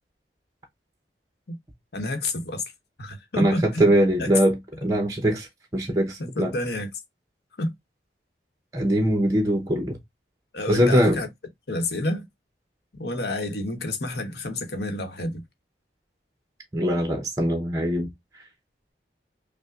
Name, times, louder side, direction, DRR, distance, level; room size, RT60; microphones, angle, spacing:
voice 1, 1.9-2.6 3.0-3.9 4.2-4.3 6.2-6.9 7.6-7.7 10.5-11.3 11.7-12.3 13.0-15.4, left 2 dB, 70° left, 1.0 m, -29 dB
voice 2, 3.4-5.5 5.7-6.5 8.7-10.0 10.7-11.2 16.7-18.1, equal, 20° right, 0.7 m, -22 dB
5.6 x 2.2 x 2.4 m
head